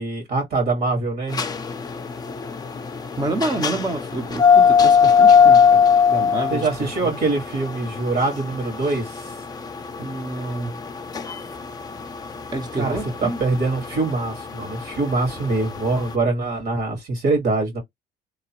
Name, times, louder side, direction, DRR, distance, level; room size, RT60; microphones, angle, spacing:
voice 1, 0.0-1.4 6.5-9.2 12.7-17.8, right 3 dB, 65° right, 1.6 m, -24 dB
sound 1, 1.3-16.0, left 6 dB, 25° left, 0.5 m, -19 dB
voice 2, 3.2-7.2 10.0-10.8 12.5-13.4, right 2 dB, 25° right, 0.6 m, -28 dB
2.9 x 2.0 x 2.9 m
cardioid pair, 110°, 17 cm